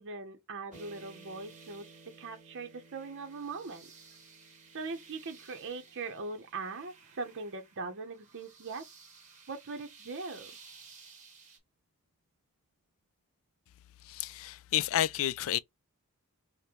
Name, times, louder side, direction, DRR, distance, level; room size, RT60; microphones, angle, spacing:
voice 1, 0.0-3.9 4.7-8.9 9.5-10.5, right 4 dB, 55° right, 0.7 m, -41 dB
sound 1, 0.7-9.6, right 2 dB, 15° left, 1.6 m, -59 dB
sound 2, 0.7-11.6, right 5 dB, 35° right, 1.1 m, -56 dB
voice 2, 14.0-15.6, left 12 dB, 65° left, 0.3 m, -30 dB
5.1 x 2.1 x 2.9 m
head